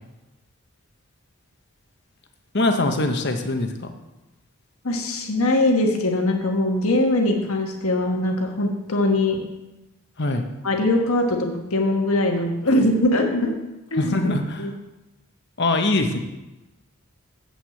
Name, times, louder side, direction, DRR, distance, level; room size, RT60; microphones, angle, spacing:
voice 1, 2.5-3.9 10.2-10.5 13.9-14.6 15.6-16.2, left 2 dB, 50° left, 6 dB, 1.0 m, -22 dB
voice 2, 4.8-9.4 10.6-13.6 13.9-14.3 14.6-14.7, left 1 dB, 75° left, 2 dB, 1.5 m, -21 dB
8.2 x 6.2 x 7.1 m, 1.0 s
head